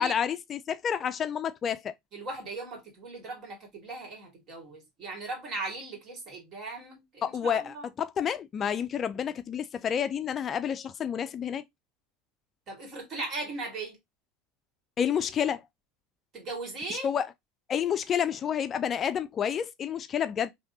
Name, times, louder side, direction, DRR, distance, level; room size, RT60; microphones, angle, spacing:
voice 1, 0.0-1.9 7.2-11.6 15.0-15.6 16.9-17.3 17.7-20.5, left 8 dB, 40° left, 0.3 m, -29 dB
voice 2, 2.1-7.9 12.7-14.0 16.3-17.1, right 3 dB, 45° right, 2.0 m, -38 dB
3.5 x 2.7 x 2.6 m
hypercardioid pair, 90°, 0 cm